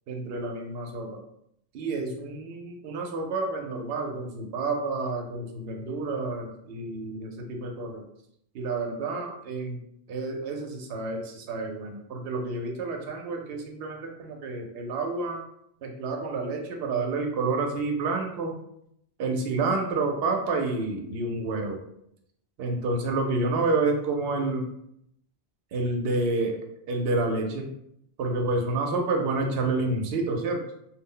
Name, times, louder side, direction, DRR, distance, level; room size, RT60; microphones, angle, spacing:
voice 1, 0.1-1.2 1.7-8.0 8.5-9.8 10.1-15.4 15.8-18.6 19.2-21.8 22.6-24.7 25.7-26.6 26.9-27.7 28.2-30.6, right 3 dB, 65° right, 2 dB, 0.7 m, -29 dB
2.3 x 2.0 x 3.6 m, 0.75 s
omnidirectional pair, 1.2 m